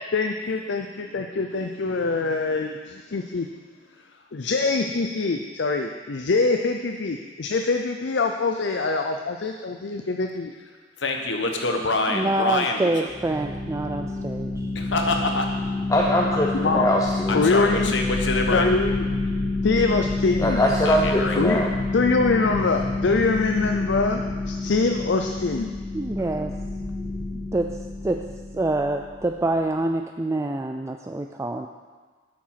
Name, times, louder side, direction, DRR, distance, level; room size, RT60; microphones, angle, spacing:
voice 1, 0.1-3.5 4.3-10.5 16.5-16.9 17.3-18.0 18.5-19.1 19.6-20.6 21.4-21.6 21.9-25.7, left 3 dB, 75° left, 4 dB, 0.5 m, -24 dB
voice 2, 11.0-12.9 14.7-15.5 17.3-18.7 20.8-21.4, left 2 dB, 90° left, 3 dB, 1.2 m, -25 dB
voice 3, 12.1-14.7 25.9-26.5 27.5-27.7 28.0-28.2 28.5-31.7, right 2 dB, 15° right, 4 dB, 0.3 m, -26 dB
sound 1, 13.1-29.3, left 2 dB, 40° right, 3.1 m, -28 dB
voice 4, 15.9-17.4 20.4-21.7, equal, 20° left, -1 dB, 0.6 m, -22 dB
8.8 x 7.4 x 5.8 m, 1.5 s
head